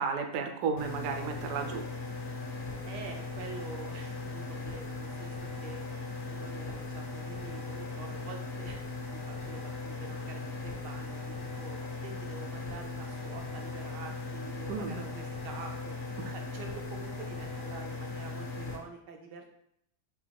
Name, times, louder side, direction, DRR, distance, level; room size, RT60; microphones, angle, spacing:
voice 1, 0.0-1.8 14.7-14.9 16.2-16.3, right 5 dB, 70° right, 4 dB, 0.8 m, -33 dB
sound 1, 0.8-18.8, left 3 dB, 50° left, 0.8 m, -38 dB
voice 2, 2.8-5.8 6.2-16.0 16.3-19.5, right 4 dB, 90° right, 2 dB, 1.3 m, -47 dB
3.8 x 2.8 x 3.4 m, 0.74 s
omnidirectional pair, 1.8 m